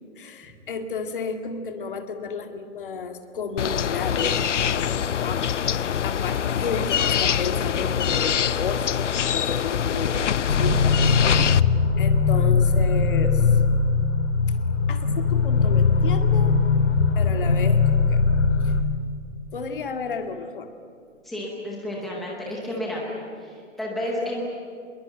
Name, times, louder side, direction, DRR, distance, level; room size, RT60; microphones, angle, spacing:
voice 1, 0.2-11.0 12.0-13.5 14.9-16.6 17.2-18.2 18.6-18.7 19.5-20.7, left 5 dB, 40° left, 6 dB, 2.1 m, -32 dB
sound 1, 3.6-11.6, left 9 dB, 65° left, 0.8 m, -24 dB
sound 2, 10.5-18.8, left 4 dB, 80° left, 2.3 m, -20 dB
voice 2, 21.2-23.1 23.4-24.4, left 1 dB, ahead, -5 dB, 0.7 m, -31 dB
25.5 x 21.5 x 9.0 m, 2.3 s
hypercardioid pair, 175°, 39 cm